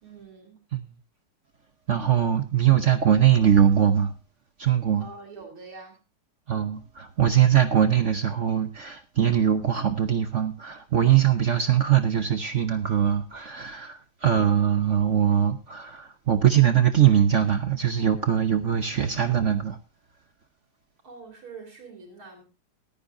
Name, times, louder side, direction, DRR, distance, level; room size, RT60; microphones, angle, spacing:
voice 1, 0.0-0.6 5.0-6.0 21.0-22.4, right 4 dB, 75° right, 4.5 m, -44 dB
voice 2, 1.9-4.1 4.6-5.1 6.5-19.8, right 9 dB, 55° right, 0.8 m, -22 dB
20.5 x 9.7 x 2.6 m
omnidirectional pair, 2.3 m